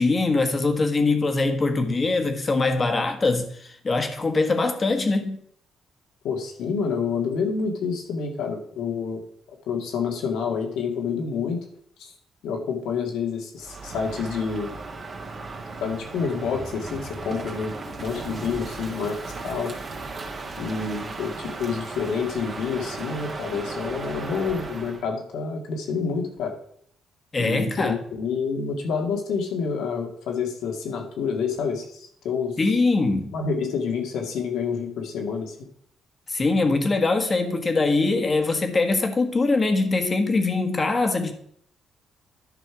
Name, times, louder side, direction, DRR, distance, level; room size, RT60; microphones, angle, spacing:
voice 1, 0.0-5.4 27.3-27.9 32.6-33.3 36.3-41.3, left 3 dB, 30° left, 1.4 m, -22 dB
voice 2, 6.2-9.2 9.5-11.6 12.0-12.1 12.4-14.8 15.8-19.2 19.4-19.7 20.6-26.5 27.4-32.6 33.3-35.6, left 5 dB, 85° left, 1.9 m, -28 dB
Crow, 13.6-25.0, right 3 dB, 40° right, 1.8 m, -36 dB
10.5 x 5.5 x 4.8 m
cardioid pair, 90°, 0 cm